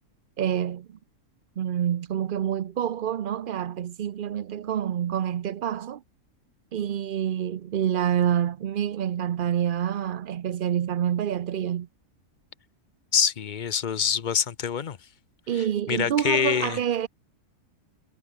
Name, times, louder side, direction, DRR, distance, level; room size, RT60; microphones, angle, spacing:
voice 1, 0.4-1.0 1.6-6.0 6.7-11.9 15.5-17.1, right 10 dB, 70° right, 0.5 m, -27 dB
voice 2, 13.1-15.0 15.6-16.8, left 7 dB, 45° left, 0.6 m, -25 dB
omnidirectional pair, 1.6 m